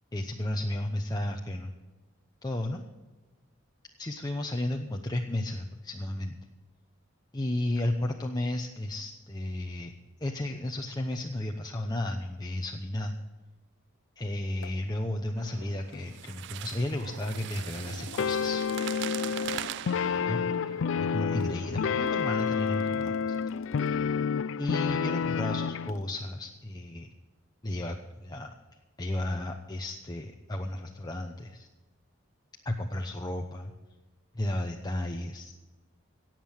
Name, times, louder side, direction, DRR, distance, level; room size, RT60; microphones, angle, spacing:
voice 1, 0.1-1.7 2.4-2.8 4.0-6.4 7.3-9.9 10.2-13.1 14.2-18.6 20.3-20.4 21.0-23.4 24.6-27.1 27.6-28.5 29.0-31.7 32.6-33.7 34.3-35.5, left 1 dB, 20° left, 2 dB, 0.8 m, -33 dB
sound 1, 14.6-14.9 15.9-16.1 17.6-20.0 22.1-24.1 25.9-26.2, left 3 dB, 80° left, 1.0 m, -47 dB
sound 2, 15.4-22.1, right 11 dB, 60° right, 0.3 m, -42 dB
sound 3, 18.2-25.9, left 6 dB, 65° left, 0.4 m, -29 dB
18.0 x 7.6 x 6.5 m, 1.2 s
head